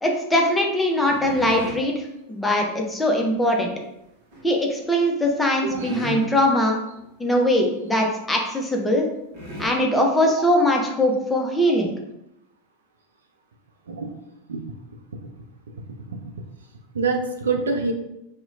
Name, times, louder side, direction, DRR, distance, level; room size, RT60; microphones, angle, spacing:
voice 1, 0.0-3.7 4.4-6.8 7.2-9.1 9.6-11.9, left 1 dB, 10° left, 1 dB, 0.5 m, -21 dB
sound 1, 1.0-1.8 4.3-4.7 5.2-5.3 5.7-6.5 7.0-7.1 7.3-7.5 8.0-8.1 8.9-9.0 9.3-9.7, right 1 dB, 50° right, 0.8 m, -35 dB
voice 2, 16.9-17.9, right 4 dB, 75° right, 3 dB, 0.4 m, -25 dB
2.8 x 2.1 x 2.5 m, 0.86 s
figure-of-eight pair, 90°, 0 cm